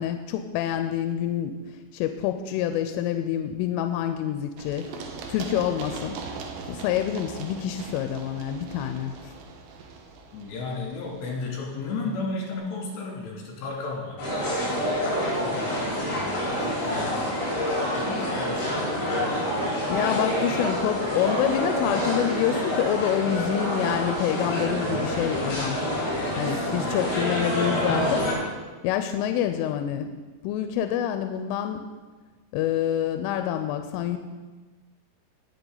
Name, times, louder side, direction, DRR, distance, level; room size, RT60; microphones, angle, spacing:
voice 1, 0.0-1.6 1.9-4.9 5.3-6.2 6.7-9.3 19.9-25.8 26.4-28.3 28.8-30.1 30.4-31.8 32.5-34.2, left 10 dB, 90° left, 8 dB, 3.1 m, -27 dB
Run, 4.6-12.2, right 4 dB, 80° right, 3.3 m, -40 dB
voice 2, 10.3-14.2 15.4-17.3 17.9-19.6 26.1-27.1, left 3 dB, 65° left, -2 dB, 4.7 m, -35 dB
sound 1, 14.2-28.3, equal, 45° left, 5.8 m, -27 dB
18.0 x 7.2 x 3.9 m, 1.3 s
omnidirectional pair, 5.6 m